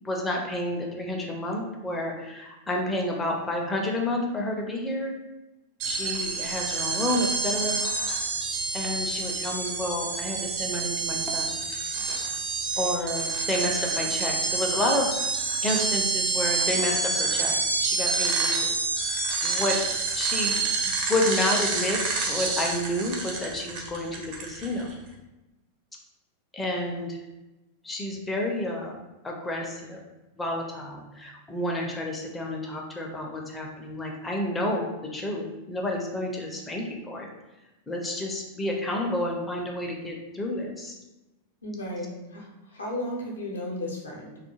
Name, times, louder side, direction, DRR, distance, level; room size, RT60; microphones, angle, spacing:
voice 1, 0.0-5.1 5.8-7.8 8.7-11.6 12.8-15.1 15.6-18.8 19.4-19.8 20.1-22.0 22.3-24.9 26.5-27.2 27.8-29.0 29.2-30.0 30.4-37.3 37.9-41.0, left 1 dB, 10° left, 0 dB, 0.4 m, -30 dB
sound 1, 5.8-24.9, right 4 dB, 45° right, 0.5 m, -28 dB
voice 2, 11.9-12.3 13.0-13.1 41.6-44.4, left 1 dB, 75° left, -2 dB, 0.6 m, -35 dB
2.3 x 2.2 x 2.9 m, 1.0 s
figure-of-eight pair, 90°, 0 cm